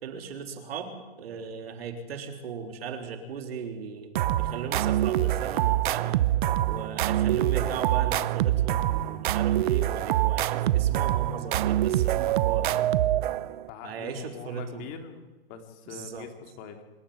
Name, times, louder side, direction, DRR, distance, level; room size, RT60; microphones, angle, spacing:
voice 1, 0.0-4.1 4.4-6.1 6.7-12.9 13.8-14.9 15.9-16.3, right 6 dB, 75° right, 5 dB, 3.7 m, -37 dB
sound 1, 4.2-13.7, right 13 dB, 55° right, 0.8 m, -25 dB
voice 2, 13.7-16.8, left 6 dB, 35° left, 5 dB, 2.9 m, -43 dB
26.0 x 12.5 x 9.6 m, 1.2 s
hypercardioid pair, 155°, 31 cm